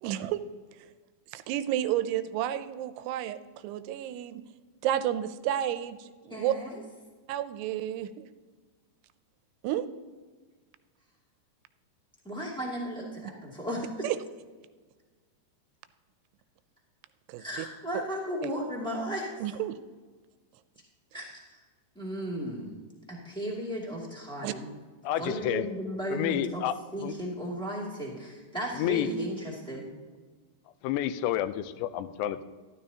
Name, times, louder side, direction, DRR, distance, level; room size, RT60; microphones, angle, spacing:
voice 1, 0.0-0.4 1.3-4.4 4.8-6.5 7.3-8.2 9.6-9.9 14.0-14.2 17.3-17.7 17.9-18.0 18.4-18.5 19.4-19.7 24.4-24.5, right 12 dB, 85° right, 12 dB, 2.6 m, -31 dB
voice 2, 6.3-6.7 12.2-13.9 17.4-19.3 21.1-21.6 21.9-22.7 23.1-24.7 25.2-26.6 26.9-29.9, equal, 5° left, -5 dB, 0.9 m, -35 dB
voice 3, 25.0-25.6 26.1-27.1 28.7-29.1 30.8-32.4, left 12 dB, 90° left, 12 dB, 2.8 m, -30 dB
13.0 x 12.0 x 2.8 m, 1.4 s
omnidirectional pair, 4.8 m